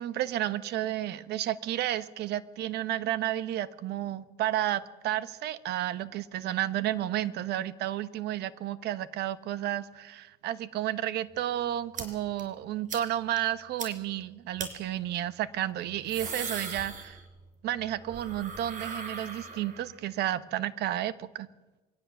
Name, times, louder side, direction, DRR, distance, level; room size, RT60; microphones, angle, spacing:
voice 1, 0.0-17.2 17.6-21.5, right 12 dB, 75° right, 14 dB, 1.1 m, -32 dB
sound 1, 12.0-12.1 12.4-12.5 12.9-13.0 13.4-13.5 13.8-13.9 14.6-14.7 15.8-17.5 17.8-19.9, right 5 dB, 50° right, 4.4 m, -38 dB
22.5 x 17.5 x 7.1 m, 1.1 s
cardioid pair, 110°, 17 cm